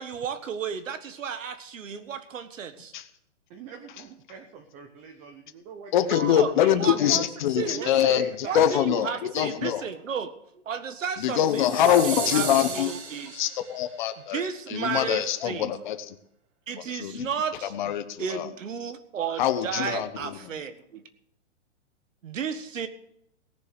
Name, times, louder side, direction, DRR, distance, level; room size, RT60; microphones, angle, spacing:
voice 1, 0.0-2.9 6.1-7.2 7.6-8.1 8.4-10.4 10.6-12.5 12.7-13.4 14.3-15.7 16.7-17.9 18.2-21.0 22.2-22.9, right 7 dB, 85° right, 10 dB, 1.7 m, -33 dB
voice 2, 3.5-7.1 7.6-8.7, right 6 dB, 20° right, 5 dB, 0.8 m, -43 dB
voice 3, 5.9-9.9 11.2-12.9 13.3-14.4 14.7-16.2 16.9-17.3 17.6-18.5 19.4-20.4, left 10 dB, 40° left, 11 dB, 1.1 m, -24 dB
sound 1, 11.4-13.9, right 5 dB, 55° right, 2.5 m, -35 dB
18.5 x 6.9 x 6.7 m, 0.75 s
hypercardioid pair, 160°, 38 cm